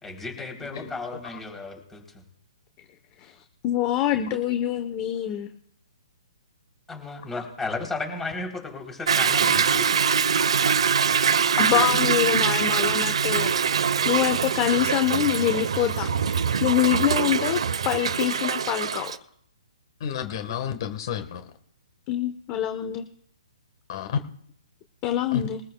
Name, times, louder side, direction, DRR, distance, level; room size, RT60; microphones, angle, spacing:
voice 1, 0.0-2.2 6.9-9.9 20.3-20.6, left 3 dB, 10° left, 1 dB, 3.5 m, -34 dB
voice 2, 3.6-5.5 11.6-13.7 14.0-16.4 16.6-19.1 22.1-23.0 25.0-25.6, left 12 dB, 25° left, 8 dB, 1.0 m, -25 dB
Toilet flush / Drip / Trickle dribble, 9.1-19.2, right 6 dB, 75° right, 1.0 m, -23 dB
voice 3, 20.0-21.5 23.9-24.2 25.3-25.4, left 8 dB, 45° left, 8 dB, 1.5 m, -30 dB
22.0 x 14.0 x 2.3 m, 0.70 s
hypercardioid pair, 145°, 3 cm